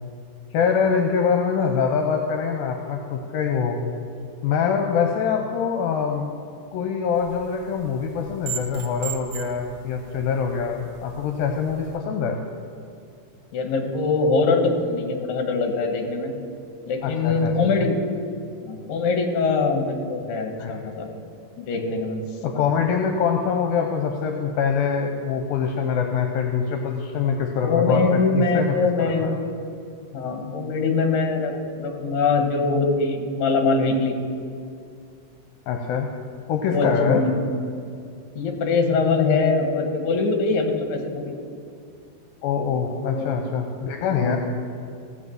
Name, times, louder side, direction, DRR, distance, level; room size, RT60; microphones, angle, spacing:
voice 1, 0.5-3.9 4.4-6.3 6.7-12.4 17.0-17.5 17.8-17.9 20.6-20.9 22.4-28.8 29.2-29.3 35.7-36.1 36.5-37.2 42.4-44.4, left 6 dB, 80° left, 3 dB, 2.4 m, -24 dB
sound 1, 7.1-12.0, right 8 dB, 75° right, 2.7 m, -39 dB
voice 2, 13.5-16.3 16.9-18.0 18.6-21.1 21.6-22.2 22.5-22.6 27.6-29.3 30.1-34.1 36.7-37.4 38.3-41.3 42.8-43.4 44.1-44.4, left 4 dB, 60° left, 3 dB, 2.5 m, -23 dB
16.5 x 5.7 x 7.8 m, 2.4 s
omnidirectional pair, 4.2 m